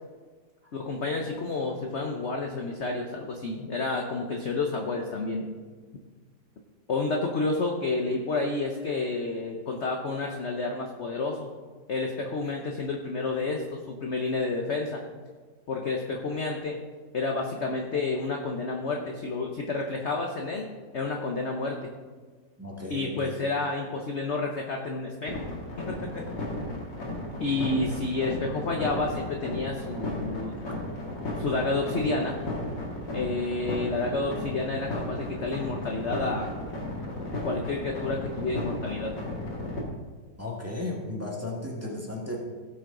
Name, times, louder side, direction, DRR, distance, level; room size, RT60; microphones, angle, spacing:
voice 1, 0.7-5.5 6.9-11.5 11.9-15.0 15.7-16.8 17.1-20.7 20.9-21.8 22.9-25.4 25.8-26.2 27.4-30.6 31.4-32.4 33.1-36.5 37.4-39.1, left 3 dB, 50° left, 1 dB, 0.9 m, -30 dB
voice 2, 22.6-23.3 30.7-30.8 40.4-42.4, left 2 dB, 10° right, -3 dB, 1.7 m, -35 dB
sound 1, 25.3-39.8, left 1 dB, 75° left, 2.6 m, -34 dB
17.0 x 6.2 x 3.9 m, 1.4 s
omnidirectional pair, 1.9 m